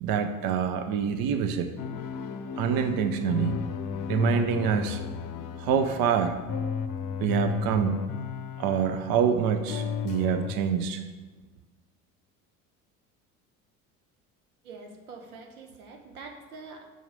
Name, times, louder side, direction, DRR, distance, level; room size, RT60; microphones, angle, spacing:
voice 1, 0.0-1.7 2.6-3.5 4.1-5.0 5.6-6.4 7.2-8.0 8.6-11.0, right 7 dB, 55° right, 8 dB, 0.7 m, -26 dB
sound 1, 1.8-9.4 9.7-10.5, left 7 dB, 45° left, 0.7 m, -34 dB
voice 2, 14.6-16.9, right 4 dB, 85° right, 4 dB, 1.1 m, -45 dB
6.3 x 4.6 x 6.6 m, 1.3 s
hypercardioid pair, 70°, 43 cm